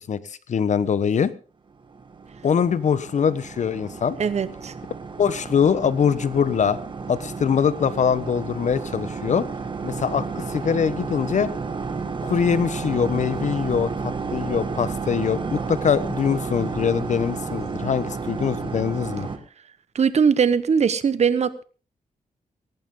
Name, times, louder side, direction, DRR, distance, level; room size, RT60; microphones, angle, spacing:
voice 1, 0.1-1.3 2.4-4.2 5.2-6.8 7.1-9.5 9.8-11.5 12.2-19.3, left 7 dB, 60° left, 16 dB, 1.0 m, -23 dB
sound 1, 1.8-19.4, right 4 dB, 35° right, 1.9 m, -32 dB
voice 2, 4.2-4.7 19.9-21.6, right 6 dB, 50° right, 15 dB, 1.1 m, -20 dB
18.5 x 14.5 x 3.8 m, 0.36 s
wide cardioid pair, 120°, 14 cm